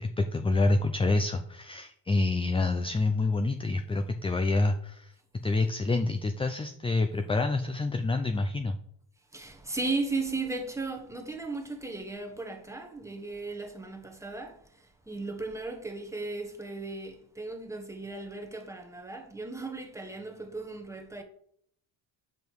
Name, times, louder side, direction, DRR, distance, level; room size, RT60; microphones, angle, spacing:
voice 1, 0.0-5.1 5.4-8.8, left 2 dB, 15° left, 0.4 m, -27 dB
voice 2, 9.3-21.2, right 3 dB, 5° right, 1.1 m, -36 dB
8.2 x 5.2 x 4.6 m
cardioid pair, 130°, 44 cm